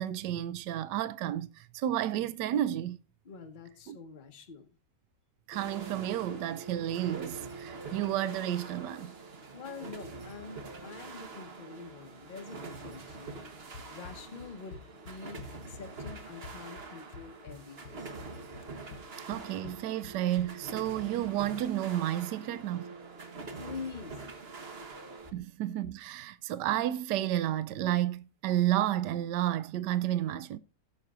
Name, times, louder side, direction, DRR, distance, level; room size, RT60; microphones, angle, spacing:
voice 1, 0.0-3.0 3.9-4.0 5.5-9.1 19.2-22.9 25.3-30.6, right 12 dB, 80° right, 1.2 m, -31 dB
voice 2, 3.2-4.7 9.5-13.4 13.9-18.1 23.6-24.3, left 5 dB, 35° left, 1.1 m, -46 dB
sound 1, 5.5-25.3, right 3 dB, 40° right, 1.2 m, -45 dB
Run, 13.7-20.8, left 5 dB, 75° left, 1.6 m, -49 dB
17.5 x 6.6 x 2.4 m
omnidirectional pair, 1.9 m